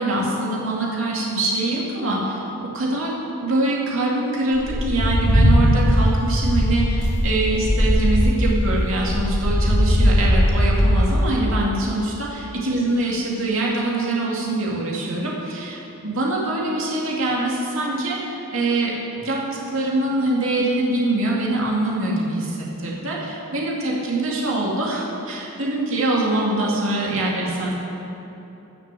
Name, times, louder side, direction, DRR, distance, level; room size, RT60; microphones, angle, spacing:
voice 1, 0.0-2.4 2.7-3.2 3.4-27.7, right 2 dB, 65° right, -4 dB, 2.5 m, -24 dB
sound 1, 4.5-11.0, equal, 90° left, 2.5 m, -18 dB
13.5 x 7.4 x 7.6 m, 3.0 s
head